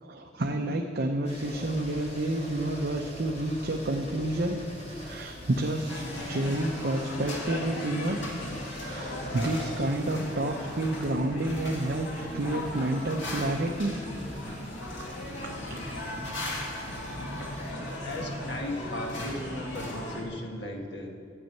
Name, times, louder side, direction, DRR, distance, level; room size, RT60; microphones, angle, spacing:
voice 1, 0.0-4.6 5.0-8.2 8.8-14.0 15.1-16.4 16.9-17.2, right 1 dB, 55° right, 2 dB, 0.7 m, -30 dB
sound 1, 1.2-17.7, equal, 40° left, 2.9 m, -44 dB
sound 2, 5.9-20.2, left 1 dB, 85° left, 2.2 m, -37 dB
voice 2, 18.0-21.1, left 1 dB, 60° left, 1 dB, 1.6 m, -36 dB
12.5 x 5.5 x 9.0 m, 2.5 s
head